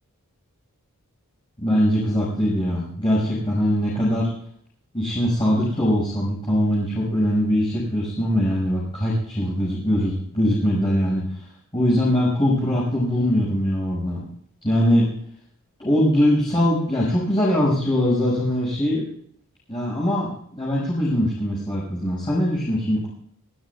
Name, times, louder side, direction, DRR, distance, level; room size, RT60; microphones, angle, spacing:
voice 1, 1.6-4.3 4.9-11.2 11.7-14.2 14.6-15.1 15.8-19.0 19.7-23.1, equal, 20° left, -6 dB, 6.2 m, -22 dB
26.5 x 16.0 x 2.4 m, 0.63 s
head